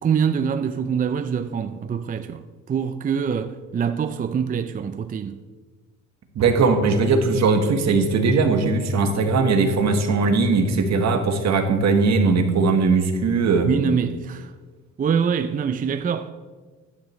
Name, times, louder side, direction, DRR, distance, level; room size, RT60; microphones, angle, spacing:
voice 1, 0.0-5.4 13.6-14.5 15.0-16.3, right 7 dB, 30° right, 0.4 m, -24 dB
voice 2, 6.3-13.7, right 4 dB, 65° right, 1.4 m, -19 dB
11.5 x 9.5 x 3.2 m
cardioid pair, 90°, 30 cm